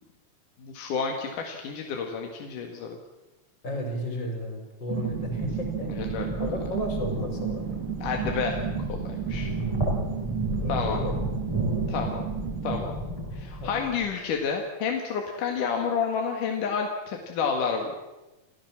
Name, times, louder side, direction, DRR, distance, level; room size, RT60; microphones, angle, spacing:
voice 1, 0.6-3.0 6.0-6.5 8.0-8.6 8.9-9.0 9.3-9.5 10.7-11.0 11.9-12.2 12.6-12.9 13.3-17.9, left 6 dB, 75° left, 2 dB, 3.4 m, -30 dB
voice 2, 3.6-5.9 6.4-7.8 10.6-11.2 12.4-12.5 13.6-13.9, equal, 35° left, 3 dB, 5.3 m, -33 dB
sound 1, 4.9-14.1, right 1 dB, 5° right, 6.2 m, -32 dB
sound 2, 4.9-12.8, right 13 dB, 90° right, 3.0 m, -34 dB
28.5 x 16.0 x 7.3 m, 1.1 s
omnidirectional pair, 3.7 m